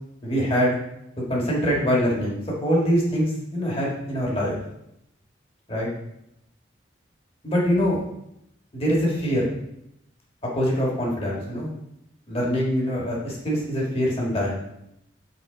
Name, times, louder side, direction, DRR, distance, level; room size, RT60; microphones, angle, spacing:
voice 1, 0.2-0.8 1.3-4.5 5.7-5.9 7.4-8.0 8.7-9.5 10.6-11.7 12.3-14.6, equal, 30° left, -3 dB, 1.7 m, -24 dB
7.5 x 4.1 x 3.9 m, 0.81 s
head